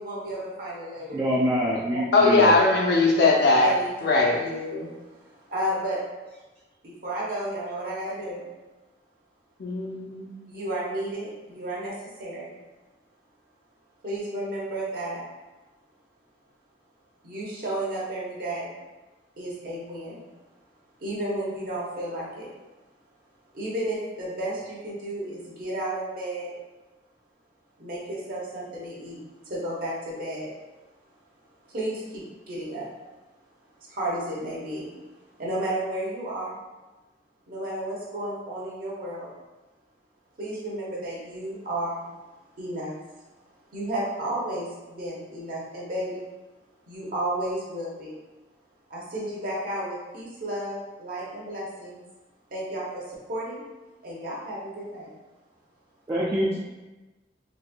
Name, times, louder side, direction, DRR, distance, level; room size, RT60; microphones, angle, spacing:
voice 1, 0.0-1.3 3.6-3.9 4.3-6.0 6.8-8.4 10.5-11.9 12.2-12.5 14.0-15.2 17.2-18.7 19.4-20.2 21.0-22.5 23.5-26.5 27.8-29.2 29.4-30.5 31.7-32.9 33.9-34.9 35.4-36.6 37.5-39.3 40.4-42.0 42.6-43.0 43.7-46.3 46.9-48.2 48.9-52.0 52.5-53.6 54.0-55.1, right 1 dB, 55° right, -5 dB, 0.9 m, -32 dB
voice 2, 1.1-2.5 56.1-56.6, equal, 20° right, -6 dB, 0.4 m, -25 dB
voice 3, 2.1-3.7 4.0-4.4 9.6-10.4, left 3 dB, 65° left, -1 dB, 0.6 m, -20 dB
4.0 x 2.5 x 2.2 m, 1.1 s
head